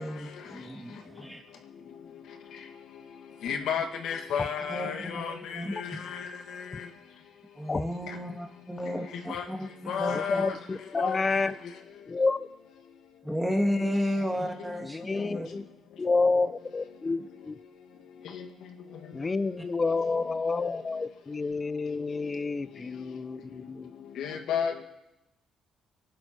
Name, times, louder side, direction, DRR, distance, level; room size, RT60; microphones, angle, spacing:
voice 1, 0.0-1.4 4.7-5.2 5.5-6.0 7.5-10.4 13.2-15.5, equal, 5° right, 2.8 m, -32 dB
voice 2, 3.4-5.3 9.3-9.4 9.9-10.5 11.0-11.2 24.2-24.8, left 7 dB, 80° left, 2.2 m, -31 dB
voice 3, 10.1-11.6 12.1-12.5 13.5-13.8 14.8-15.7 16.0-17.5 19.1-23.9, left 3 dB, 30° left, 0.8 m, -29 dB
24.5 x 11.5 x 4.6 m
cardioid pair, 90°, 0 cm